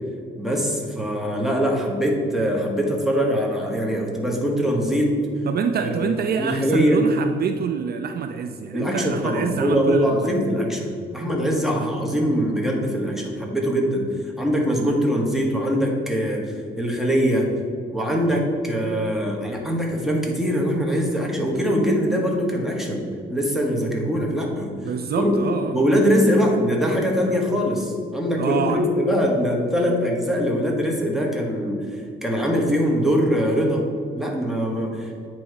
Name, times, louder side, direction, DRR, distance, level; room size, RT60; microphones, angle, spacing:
voice 1, 0.4-5.1 5.8-5.9 6.4-7.0 8.7-14.1 14.4-17.5 17.9-24.7 25.2-25.4 25.7-31.8 32.2-33.8 34.1-35.1, equal, ahead, -1 dB, 1.3 m, -22 dB
voice 2, 5.5-10.3 24.7-25.9 28.4-28.8, right 7 dB, 50° right, 7 dB, 0.4 m, -26 dB
8.6 x 3.0 x 4.8 m, 2.3 s
cardioid pair, 90°, 20 cm